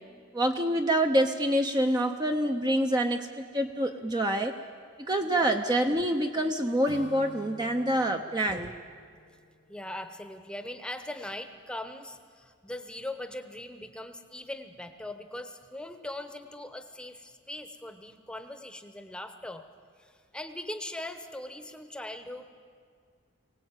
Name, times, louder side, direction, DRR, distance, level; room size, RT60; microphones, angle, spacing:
voice 1, 0.3-4.5 5.1-8.7, right 1 dB, 20° right, 4 dB, 0.7 m, -26 dB
Acoustic guitar / Strum, 6.9-10.5, left 1 dB, 80° left, 1.6 m, -49 dB
voice 2, 9.7-19.6 20.0-22.5, left 1 dB, 5° left, 8 dB, 1.0 m, -40 dB
23.5 x 18.0 x 9.0 m, 2.1 s
head